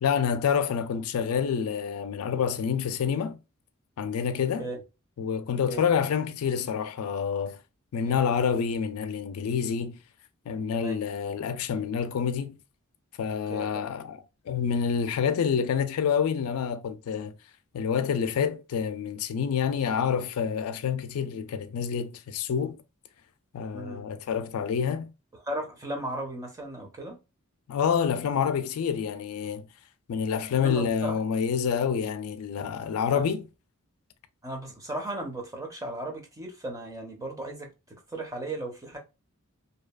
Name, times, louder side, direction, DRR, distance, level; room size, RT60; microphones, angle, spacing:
voice 1, 0.0-3.4 4.0-4.7 5.2-7.6 7.9-10.0 10.5-12.6 13.2-17.3 17.7-22.8 23.5-25.1 27.7-29.7 30.1-33.4, left 7 dB, 75° left, 0.3 m, -28 dB
voice 2, 13.5-13.9 23.7-24.1 25.5-27.2 30.5-31.2 33.1-33.2 34.4-39.0, right 1 dB, 15° right, 0.5 m, -36 dB
2.7 x 2.4 x 2.2 m
head